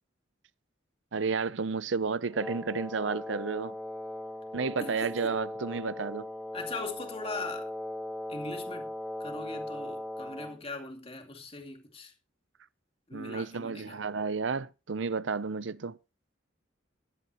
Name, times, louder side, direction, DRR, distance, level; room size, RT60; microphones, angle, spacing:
voice 1, 1.1-3.8 4.5-6.3 13.1-16.0, right 4 dB, 75° right, 0.7 m, -32 dB
Wind instrument woodwind instrument, 2.3-10.6, left 1 dB, ahead, 1.4 m, -39 dB
voice 2, 4.8-5.3 6.5-7.7 8.3-8.9 9.2-12.1 13.1-14.0, left 3 dB, 30° left, 2.6 m, -40 dB
16.0 x 12.0 x 3.0 m
head